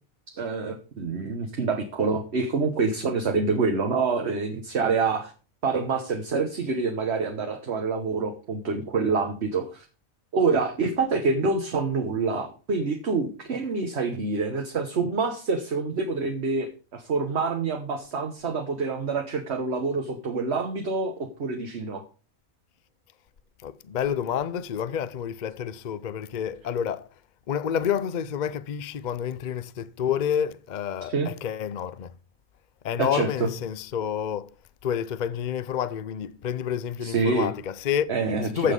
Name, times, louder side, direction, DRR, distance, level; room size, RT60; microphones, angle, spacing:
voice 1, 0.3-5.3 5.6-9.8 10.3-22.0 31.1-31.3 33.0-33.5 37.0-37.5 38.1-38.7, right 4 dB, 50° right, 1.4 m, -26 dB
voice 2, 23.6-27.1 27.5-32.1 32.8-34.5 34.8-38.1 38.4-38.7, left 8 dB, 50° left, 0.5 m, -29 dB
14.5 x 6.1 x 5.2 m
omnidirectional pair, 1.5 m